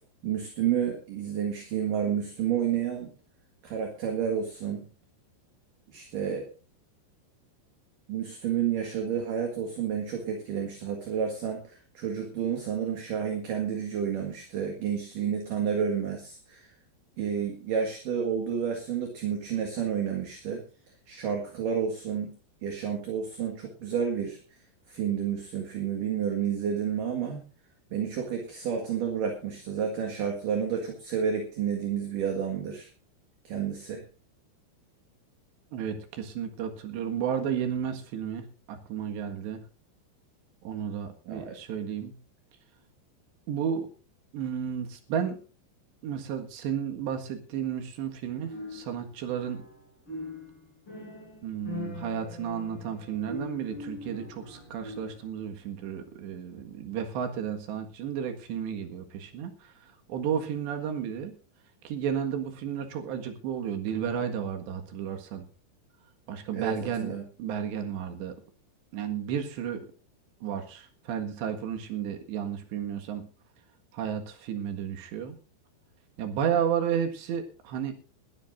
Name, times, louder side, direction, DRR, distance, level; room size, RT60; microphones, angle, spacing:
voice 1, 0.2-3.1 3.6-4.9 5.9-6.5 8.1-16.7 17.2-20.6 21.1-22.3 22.6-24.4 24.9-27.4 27.9-32.9 33.4-34.0 41.3-41.6 66.5-67.2, right 8 dB, 60° right, 2 dB, 3.0 m, -30 dB
voice 2, 35.7-39.6 40.6-42.2 43.5-43.9 44.3-45.4 46.0-49.6 51.4-61.4 61.8-65.4 66.3-68.4 68.9-69.9 70.4-73.3 73.9-75.4 76.2-77.9, right 8 dB, 80° right, 5 dB, 3.9 m, -32 dB
sound 1, 48.5-55.4, left 2 dB, 25° left, 7.3 m, -42 dB
21.5 x 12.5 x 2.6 m, 0.35 s
omnidirectional pair, 5.0 m